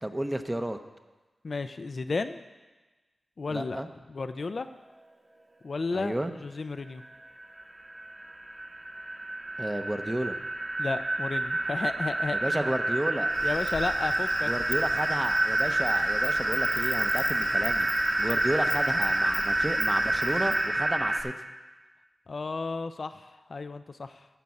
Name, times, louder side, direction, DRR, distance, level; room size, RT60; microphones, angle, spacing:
voice 1, 0.0-0.8 3.5-3.9 5.9-6.3 9.6-10.4 12.3-13.3 14.5-17.9 18.2-21.3, right 1 dB, 15° right, 7 dB, 0.8 m, -32 dB
voice 2, 1.4-2.4 3.4-3.8 4.1-4.7 5.6-7.0 10.8-12.5 13.4-14.5 22.3-24.3, left 3 dB, 60° left, 9 dB, 0.5 m, -33 dB
sound 1, 7.0-7.1 7.4-21.2, right 1 dB, 40° right, 1.4 m, -28 dB
Insect, 13.3-20.7, left 3 dB, 80° left, 2.0 m, -40 dB
14.0 x 5.3 x 7.1 m, 1.2 s
wide cardioid pair, 75°, 0 cm